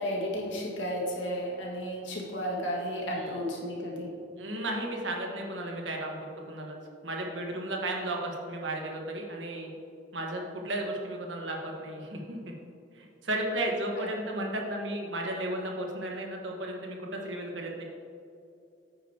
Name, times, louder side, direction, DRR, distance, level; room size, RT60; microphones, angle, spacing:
voice 1, 0.0-4.1 14.0-14.1, equal, 85° left, -2 dB, 1.9 m, -33 dB
voice 2, 4.4-6.8 7.0-9.7 10.1-12.5 12.9-17.8, right 1 dB, 80° right, 0 dB, 1.4 m, -34 dB
9.2 x 9.2 x 2.9 m, 2.6 s
head